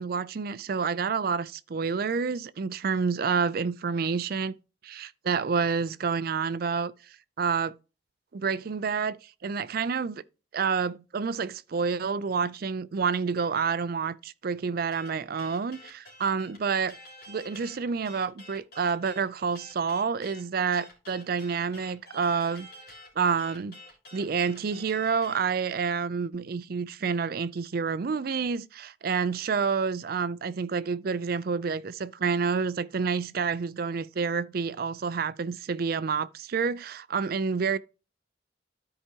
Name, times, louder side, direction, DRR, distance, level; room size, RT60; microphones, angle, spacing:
voice 1, 0.0-4.5 4.8-6.9 7.4-7.7 8.3-10.2 10.5-17.0 17.3-22.7 23.2-23.8 24.1-37.8, right 5 dB, 55° right, 0.4 m, -28 dB
sound 1, 14.9-25.5, left 1 dB, 55° left, 3.1 m, -49 dB
13.0 x 4.8 x 2.8 m
head